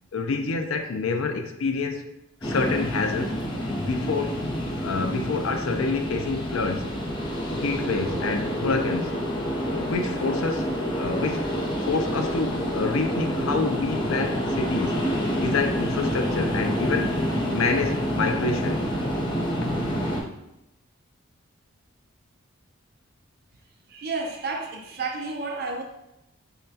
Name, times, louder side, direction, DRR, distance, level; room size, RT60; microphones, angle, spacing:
voice 1, 0.1-2.0 2.4-3.4 3.7-4.4 4.8-6.9 7.6-9.1 9.7-11.4 11.9-15.0 15.3-17.2 17.5-18.8 19.6-19.7, left 4 dB, 75° left, 6 dB, 0.4 m, -27 dB
sound 1, 2.4-20.2, equal, 20° left, 0.6 m, -28 dB
voice 2, 23.9-25.8, right 3 dB, 50° right, 3 dB, 0.5 m, -31 dB
5.6 x 2.2 x 2.7 m, 0.86 s
head